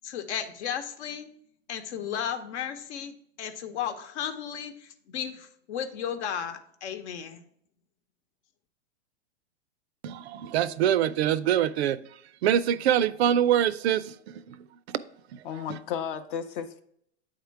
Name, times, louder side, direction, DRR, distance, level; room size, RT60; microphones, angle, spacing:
voice 1, 0.0-1.3 1.7-7.4, left 8 dB, 70° left, 0.9 m, -34 dB
voice 2, 10.0-12.0 12.4-15.0 15.3-15.4, right 10 dB, 65° right, 0.5 m, -25 dB
voice 3, 15.4-16.8, left 8 dB, 45° left, 0.6 m, -33 dB
8.4 x 3.7 x 4.5 m
hypercardioid pair, 140°, 36 cm